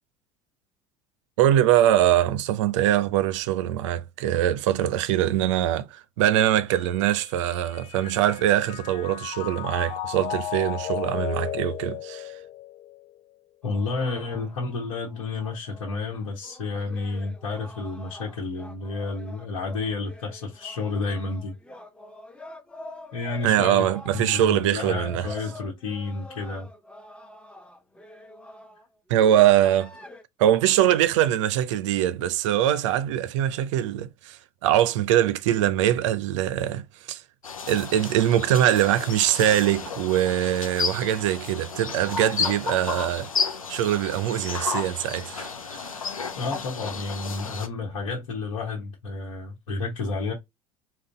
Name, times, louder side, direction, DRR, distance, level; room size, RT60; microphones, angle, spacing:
voice 1, 1.4-12.3 23.4-25.3 29.1-30.0 30.4-37.2 37.7-43.3 43.7-45.9, right 12 dB, 65° right, 0.5 m, -23 dB
Mallet percussion, 6.7-13.2, left 12 dB, 35° left, 0.4 m, -35 dB
voice 2, 13.6-21.5 23.1-23.9 24.1-26.7 46.3-50.3, left 3 dB, 70° left, 1.1 m, -31 dB
sound 1, 13.6-28.9 29.5-30.2, left 1 dB, 5° left, 0.8 m, -46 dB
sound 2, 37.4-47.7, left 5 dB, 85° left, 0.6 m, -32 dB
3.9 x 2.3 x 3.4 m
figure-of-eight pair, 70°, 17 cm